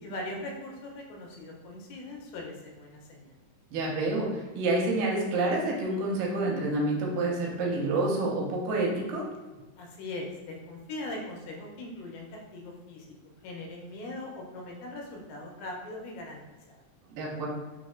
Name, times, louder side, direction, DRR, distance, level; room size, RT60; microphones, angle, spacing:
voice 1, 0.0-3.3 9.8-13.1 13.4-16.4 16.7-16.8, left 2 dB, 90° left, 0 dB, 2.3 m, -40 dB
voice 2, 3.7-9.3 17.1-17.5, right 2 dB, 80° right, -2 dB, 2.2 m, -28 dB
5.4 x 2.0 x 2.4 m, 1.2 s
omnidirectional pair, 3.9 m